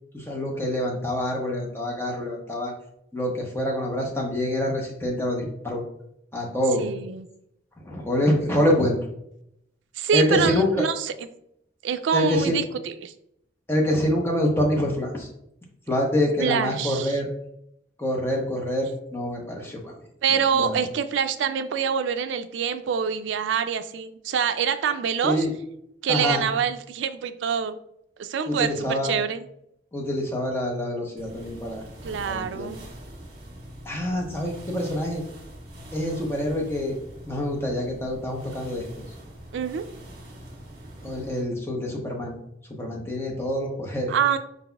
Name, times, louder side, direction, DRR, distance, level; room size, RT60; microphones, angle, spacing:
voice 1, 0.1-2.7 3.1-5.8 6.3-6.9 7.8-9.1 10.1-10.8 12.1-12.6 13.7-15.3 15.9-17.3 18.0-19.9 20.3-20.7 25.2-25.5 26.1-26.4 28.5-29.1 29.9-31.8 32.3-32.7 33.8-35.2 35.9-37.0 37.3-38.9 41.0-42.4 42.7-44.1, left 1 dB, 10° left, -1 dB, 0.8 m, -26 dB
voice 2, 6.8-7.3 10.0-11.1 11.8-13.1 16.4-17.2 20.2-25.5 26.0-27.8 28.2-29.4 32.0-32.9 39.5-39.9 44.1-44.4, right 7 dB, 75° right, 9 dB, 0.3 m, -25 dB
sound 1, 31.2-41.5, equal, 55° right, 1.4 m, -43 dB
4.8 x 4.0 x 2.3 m, 0.77 s
head